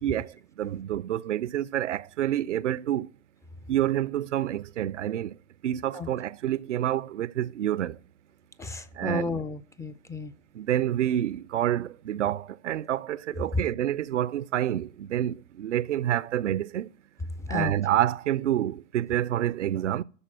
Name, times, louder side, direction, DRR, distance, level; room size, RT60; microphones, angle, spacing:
voice 1, 0.0-3.1 3.7-5.4 5.6-8.0 9.0-9.4 10.5-16.9 17.5-20.0, right 12 dB, 85° right, 0.5 m, -28 dB
voice 2, 8.6-10.3 17.5-17.7, left 4 dB, 10° left, 0.4 m, -33 dB
12.5 x 4.2 x 7.3 m
hypercardioid pair, 100°, 35 cm